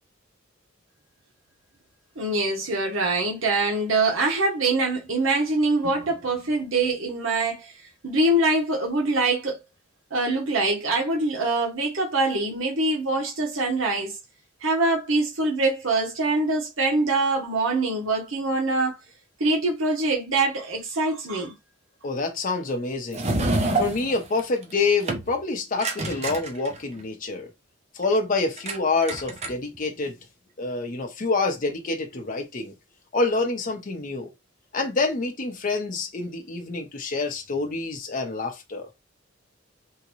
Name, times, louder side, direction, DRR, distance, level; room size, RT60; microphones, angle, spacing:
voice 1, 2.2-7.7 8.0-9.6 10.1-14.2 14.6-19.0 19.4-21.5, right 2 dB, 75° right, 0.9 m, -24 dB
voice 2, 22.0-23.3 23.8-27.5 27.9-30.2 30.6-32.7 33.1-34.3 34.7-38.9, left 3 dB, 40° left, 0.7 m, -27 dB
sound 1, 23.1-24.7 25.0-25.3 25.8-27.0 28.6-28.8 29.0-29.8, right 2 dB, 35° right, 0.6 m, -27 dB
3.7 x 2.2 x 3.0 m
head